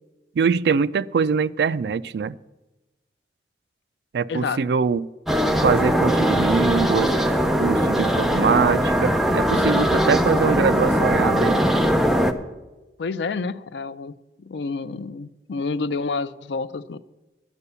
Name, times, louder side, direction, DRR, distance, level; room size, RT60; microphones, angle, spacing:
voice 1, 0.4-2.4 4.1-5.1 5.6-7.2 7.6-11.6, right 5 dB, 65° right, 0.3 m, -23 dB
sound 1, 5.3-12.3, equal, ahead, 0.6 m, -20 dB
voice 2, 13.0-17.0, left 4 dB, 80° left, 0.5 m, -29 dB
10.5 x 8.4 x 6.8 m
head